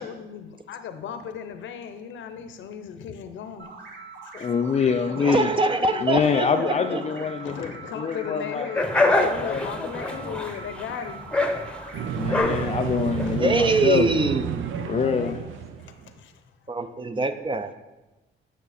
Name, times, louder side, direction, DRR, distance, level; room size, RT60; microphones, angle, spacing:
voice 1, 0.0-3.7 4.2-4.5 4.9-11.2 13.2-13.4 14.7-15.5 15.8-16.4, left 8 dB, 75° left, 0.8 m, -37 dB
sound 1, 3.6-12.4, right 4 dB, 60° right, 1.8 m, -42 dB
voice 2, 4.3-5.5 6.0-8.7 9.0-9.7 12.1-14.1 14.8-15.4, left 6 dB, 35° left, 0.5 m, -25 dB
voice 3, 5.2-7.2 13.4-14.7 16.7-17.7, right 3 dB, 25° right, 0.6 m, -24 dB
sound 2, 8.7-13.8, left 2 dB, 5° left, 0.9 m, -26 dB
sound 3, 11.9-16.1, right 9 dB, 80° right, 0.6 m, -30 dB
9.5 x 5.9 x 4.2 m
cardioid pair, 90°, 20 cm